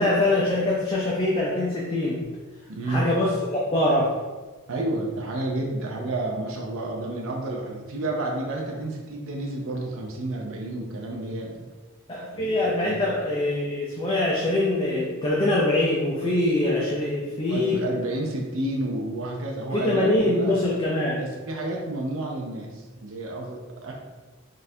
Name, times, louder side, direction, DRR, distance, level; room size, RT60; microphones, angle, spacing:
voice 1, 0.0-2.2 2.9-4.1 12.1-17.8 19.7-21.2, left 1 dB, 20° left, -4 dB, 0.4 m, -23 dB
voice 2, 2.7-3.1 4.7-11.6 12.3-13.0 17.5-20.6 21.1-23.9, right 2 dB, 60° right, 0 dB, 0.5 m, -30 dB
4.0 x 2.5 x 2.7 m, 1.3 s
head